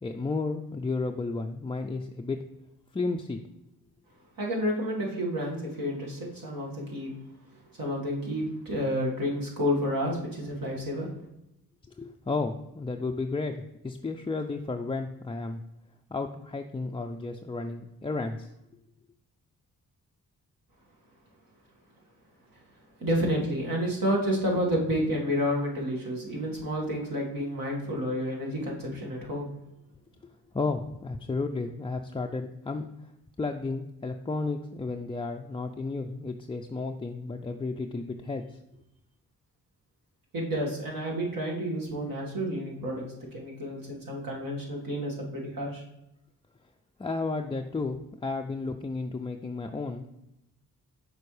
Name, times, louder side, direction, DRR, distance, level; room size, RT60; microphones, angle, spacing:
voice 1, 0.0-2.4 2.9-3.4 12.0-15.6 16.1-18.5 30.2-33.1 33.4-38.6 47.0-50.1, left 3 dB, 15° left, 3 dB, 0.4 m, -33 dB
voice 2, 4.4-7.1 7.7-11.1 23.0-29.5 40.3-45.8, equal, 60° right, -2 dB, 1.9 m, -30 dB
6.7 x 4.4 x 3.2 m, 0.87 s
supercardioid pair, 40°, 39 cm